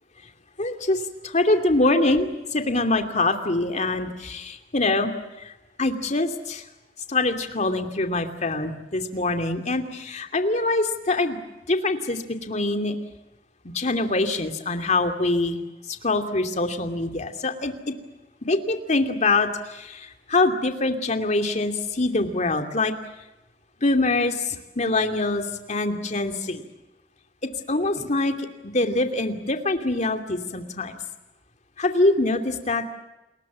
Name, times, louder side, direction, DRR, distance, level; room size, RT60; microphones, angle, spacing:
voice 1, 0.6-5.1 5.4-5.5 5.8-6.6 7.1-11.4 11.7-13.0 13.6-15.6 16.0-17.9 18.5-22.9 23.8-26.6 27.7-30.9 31.8-32.9, left 2 dB, 40° left, 6 dB, 2.7 m, -24 dB
29.0 x 21.5 x 7.5 m, 1.0 s
head